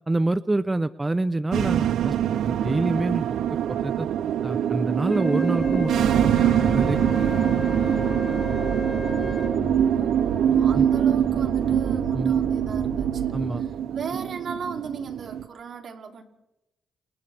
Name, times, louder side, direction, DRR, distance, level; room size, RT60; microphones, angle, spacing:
voice 1, 0.1-2.2 2.4-3.4 3.7-4.1 4.4-5.9 6.2-7.0 10.7-10.9 12.1-12.3 13.3-13.6, right 2 dB, 20° right, 13 dB, 0.7 m, -26 dB
sound 1, 1.5-15.5, right 10 dB, 80° right, 0.6 m, -24 dB
Wind instrument woodwind instrument, 5.1-9.5, left 3 dB, 15° left, 7.7 m, -34 dB
sound 2, 5.6-13.9, right 3 dB, 35° right, 5.1 m, -33 dB
voice 2, 9.8-16.2, right 6 dB, 65° right, 3 dB, 2.9 m, -37 dB
29.5 x 26.5 x 3.5 m, 0.92 s
cardioid pair, 75°, 0 cm